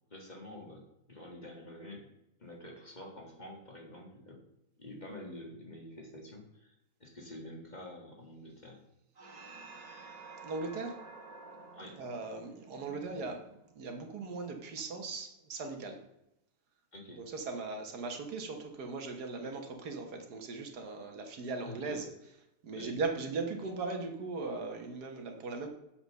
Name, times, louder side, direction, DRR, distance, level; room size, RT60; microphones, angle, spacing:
voice 1, 0.1-2.1 2.4-4.4 4.8-6.7 7.0-8.8 11.7-12.0 16.9-17.2 21.6-22.0 22.7-22.9, left 1 dB, 25° left, 0 dB, 1.8 m, -47 dB
sound 1, 9.2-13.9, right 3 dB, 30° right, 0.9 m, -51 dB
voice 2, 10.4-11.0 12.0-13.5 13.7-16.0 17.2-22.1 22.6-25.7, right 3 dB, 80° right, 4 dB, 1.8 m, -38 dB
7.1 x 5.8 x 6.5 m, 0.87 s
omnidirectional pair, 1.7 m